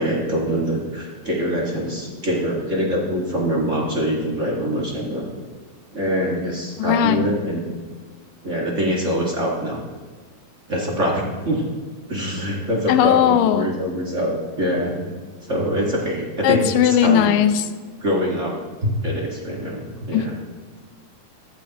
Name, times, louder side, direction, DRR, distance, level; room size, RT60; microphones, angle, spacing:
voice 1, 0.0-5.3 5.9-7.6 8.4-9.8 10.7-11.6 12.1-15.1 15.5-16.6 17.0-17.3 18.0-20.4, equal, 40° right, -3 dB, 1.1 m, -24 dB
voice 2, 6.8-7.2 12.9-13.7 16.4-17.6 20.1-20.3, left 10 dB, 85° left, 10 dB, 2.3 m, -18 dB
14.5 x 12.5 x 2.9 m, 1.5 s
omnidirectional pair, 3.8 m